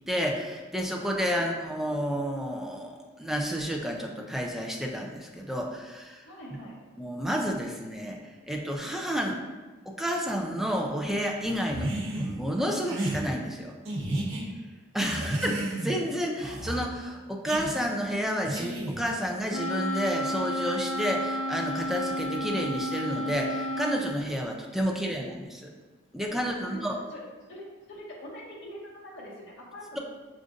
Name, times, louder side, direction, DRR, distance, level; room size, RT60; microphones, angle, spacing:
voice 1, 0.1-6.3 7.0-9.3 9.9-13.7 14.9-25.7 26.1-27.0, equal, ahead, 0 dB, 0.4 m, -30 dB
voice 2, 6.2-6.8 9.3-9.4 26.7-27.2 27.5-30.0, equal, 60° left, -7 dB, 1.5 m, -44 dB
sound 1, 11.7-12.3 12.9-13.2 13.8-14.4 15.0-16.0 16.4-16.8 17.5-17.7 18.4-19.1, right 1 dB, 80° right, 0.9 m, -32 dB
Wind instrument woodwind instrument, 19.5-24.1, equal, 90° left, 0.5 m, -32 dB
6.4 x 2.5 x 2.5 m, 1.3 s
head